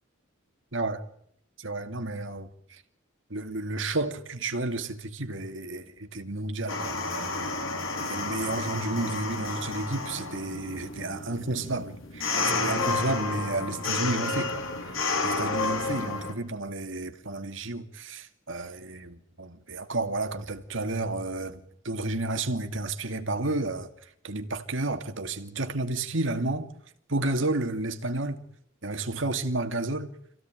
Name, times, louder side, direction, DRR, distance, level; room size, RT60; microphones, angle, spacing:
voice 1, 0.7-1.0 1.6-2.8 3.3-7.5 8.0-14.6 15.2-23.9 24.2-26.7 27.1-28.4 28.8-30.1, right 2 dB, 70° right, 2.5 m, -31 dB
sound 1, 6.7-16.3, left 3 dB, 90° left, 4.5 m, -31 dB
27.5 x 16.5 x 9.2 m
head